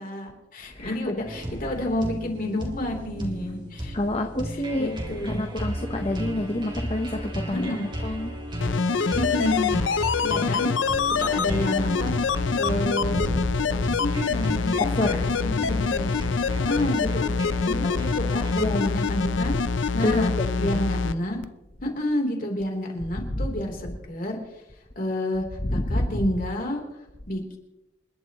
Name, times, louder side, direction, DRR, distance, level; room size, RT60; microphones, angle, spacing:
voice 1, 0.0-4.0 4.5-5.4 7.5-7.9 9.2-9.7 10.2-10.7 11.1-12.1 12.5-13.2 13.9-16.1 16.6-17.3 17.7-19.6 19.9-20.3 20.6-21.4 21.8-24.4 25.0-25.4 25.7-26.8 27.3-27.6, left 1 dB, 45° left, 1 dB, 3.5 m, -29 dB
voice 2, 0.8-1.3 3.9-4.9 5.3-7.7 8.0-8.3 13.1-13.4 14.8-15.2 18.5-18.9 20.0-20.9 23.3-23.4 25.6-26.2, left 1 dB, 30° left, 4 dB, 1.0 m, -28 dB
sound 1, 1.2-18.7, right 1 dB, 25° right, 2.4 m, -34 dB
sound 2, 8.6-21.1 21.4-21.5, left 4 dB, 75° left, 0.6 m, -25 dB
28.5 x 11.5 x 3.1 m, 0.93 s
head